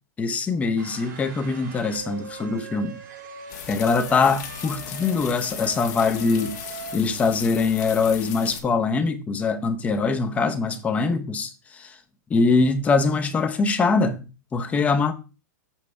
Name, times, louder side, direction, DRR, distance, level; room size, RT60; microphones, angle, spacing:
voice 1, 0.2-3.0 3.7-12.0 12.3-15.1, left 4 dB, 15° left, 0.7 m, -23 dB
sound 1, 0.8-7.0, right 5 dB, 90° right, 3.6 m, -41 dB
sound 2, 3.5-8.6, left 9 dB, 60° left, 1.2 m, -37 dB
7.2 x 5.7 x 3.3 m
hypercardioid pair, 150°, 10 cm